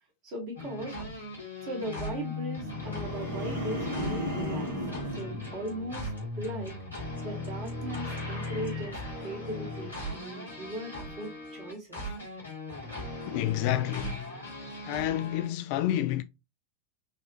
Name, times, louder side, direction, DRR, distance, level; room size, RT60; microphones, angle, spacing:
voice 1, 0.2-1.2 1.6-4.7 5.1-6.1 6.4-12.0, right 1 dB, 40° right, 1.6 m, -38 dB
sound 1, 0.6-15.5, left 2 dB, 85° left, 1.6 m, -38 dB
sound 2, 2.8-6.2 6.6-7.0, equal, 60° right, 1.6 m, -36 dB
voice 2, 13.3-14.3 14.9-16.2, left 13 dB, 45° left, 0.3 m, -29 dB
3.9 x 2.5 x 2.9 m
figure-of-eight pair, 90°, 0 cm